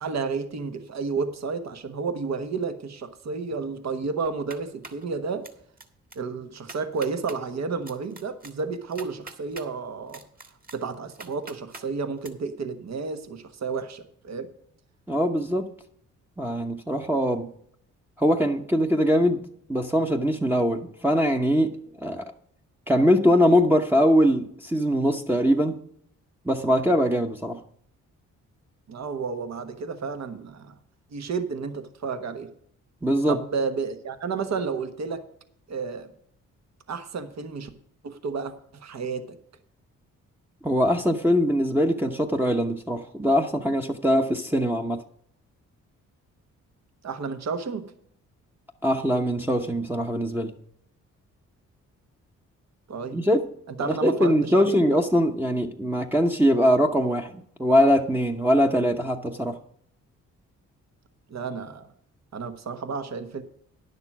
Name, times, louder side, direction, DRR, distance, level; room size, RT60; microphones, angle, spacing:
voice 1, 0.0-5.5 6.1-10.2 10.7-14.5 28.9-30.7 31.1-32.5 33.3-35.2 35.7-36.1 36.9-37.7 38.0-39.4 47.0-47.8 52.9-53.2 53.8-54.8 61.3-61.9 62.3-63.4, right 4 dB, 55° right, 9 dB, 1.3 m, -31 dB
sound 1, 4.2-5.0 5.4-5.8 6.1-6.2 6.6-7.4 7.9-9.7 10.1-11.9 12.2-12.3, right 2 dB, 25° right, 1.7 m, -44 dB
voice 2, 15.1-15.7 16.4-17.4 18.2-19.4 19.7-21.7 22.0-22.2 22.9-25.8 26.4-27.6 33.0-33.4 40.6-45.0 48.8-50.5 53.1-53.4 53.8-59.5, equal, 5° right, 0 dB, 0.9 m, -22 dB
10.0 x 6.7 x 6.0 m, 0.67 s
supercardioid pair, 55°, 32 cm